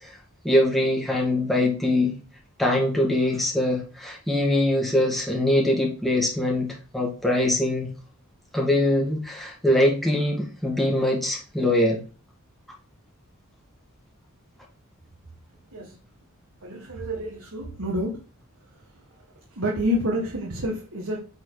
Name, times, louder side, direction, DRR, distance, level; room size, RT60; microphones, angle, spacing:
voice 1, 0.4-2.1 2.6-7.9 8.5-12.0, left 1 dB, ahead, -2 dB, 2.0 m, -23 dB
voice 2, 16.6-18.2 19.5-21.2, equal, 70° right, -1 dB, 1.6 m, -28 dB
8.6 x 4.4 x 4.0 m, 0.36 s
head